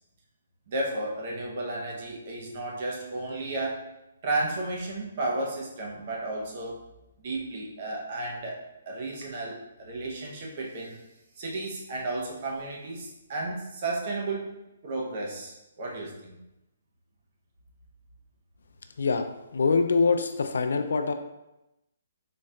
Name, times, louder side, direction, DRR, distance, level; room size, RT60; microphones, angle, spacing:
voice 1, 0.7-3.9 4.2-6.7 7.2-11.0 11.4-14.5 14.8-16.4, right 2 dB, 30° right, -2 dB, 0.6 m, -33 dB
voice 2, 19.5-21.1, left 4 dB, 70° left, 7 dB, 0.3 m, -24 dB
4.1 x 2.3 x 3.2 m, 0.94 s
hypercardioid pair, 180°, 0 cm